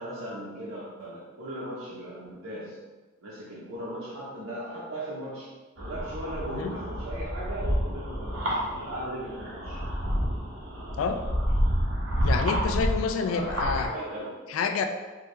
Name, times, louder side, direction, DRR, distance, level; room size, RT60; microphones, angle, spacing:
voice 1, 0.0-2.8 3.2-5.5 5.8-9.8 12.6-14.4, right 1 dB, 90° right, -7 dB, 0.8 m, -38 dB
sound 1, 5.8-13.9, equal, 70° right, 1.0 m, -29 dB
voice 2, 12.2-13.9 14.5-14.8, left 5 dB, 85° left, 8 dB, 0.3 m, -28 dB
4.4 x 2.3 x 3.2 m, 1.3 s
head